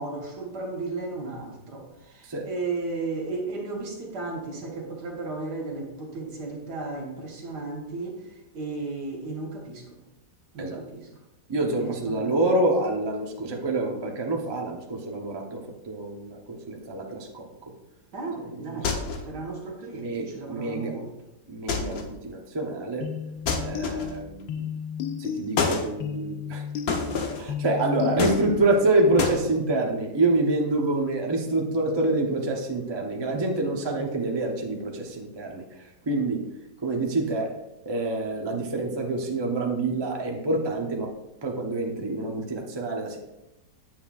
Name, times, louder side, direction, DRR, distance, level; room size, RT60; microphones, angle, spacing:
voice 1, 0.0-8.2 8.5-10.0 10.5-11.1 11.6-12.4 18.1-19.0 19.3-21.1 33.9-34.1, right 3 dB, 70° right, 0 dB, 2.0 m, -34 dB
voice 2, 11.5-17.5 18.4-18.9 19.9-20.9 21.5-23.1 23.6-24.5 25.2-26.6 27.4-36.4 36.8-37.5 37.8-41.1 41.4-43.2, right 2 dB, 25° right, 0 dB, 0.6 m, -27 dB
sound 1, 18.8-19.4 21.7-22.2 23.5-24.3 25.6-25.9 26.9-27.5 28.2-28.8 29.2-29.4, left 4 dB, 60° left, 1.3 m, -28 dB
sound 2, 23.0-29.0, left 7 dB, 85° left, 1.3 m, -33 dB
9.1 x 7.4 x 2.4 m, 0.93 s
omnidirectional pair, 1.9 m